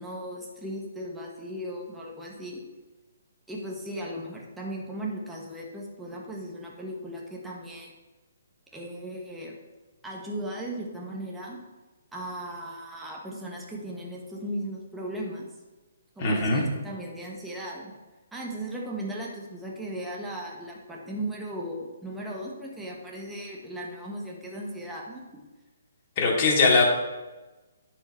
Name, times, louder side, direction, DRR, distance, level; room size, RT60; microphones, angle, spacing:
voice 1, 0.0-2.6 3.5-7.9 8.7-9.5 10.0-11.6 12.1-15.5 16.2-17.9 18.3-25.2, right 1 dB, 5° right, -3 dB, 1.4 m, -37 dB
voice 2, 16.2-16.6 26.2-26.8, left 3 dB, 35° left, -2 dB, 2.4 m, -21 dB
10.5 x 5.0 x 4.4 m, 1.2 s
hypercardioid pair, 150°, 0 cm